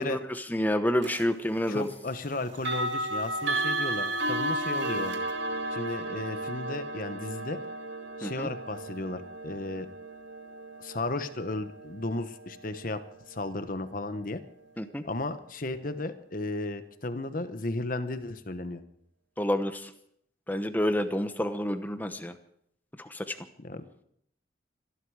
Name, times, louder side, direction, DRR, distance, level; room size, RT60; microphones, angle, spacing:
voice 1, 0.0-1.9 8.2-8.5 14.8-15.0 19.4-19.9 20.5-22.3 23.0-23.4, left 1 dB, 10° left, 9 dB, 1.0 m, -29 dB
sound 1, 1.0-1.2 2.5-13.4, right 1 dB, 80° right, 1.9 m, -34 dB
voice 2, 1.7-5.2 5.7-7.6 8.2-9.9 10.8-13.0 13.3-14.4 15.0-18.8 23.6-23.8, left 2 dB, 45° left, 11 dB, 1.2 m, -34 dB
25.5 x 11.5 x 4.9 m, 0.71 s
head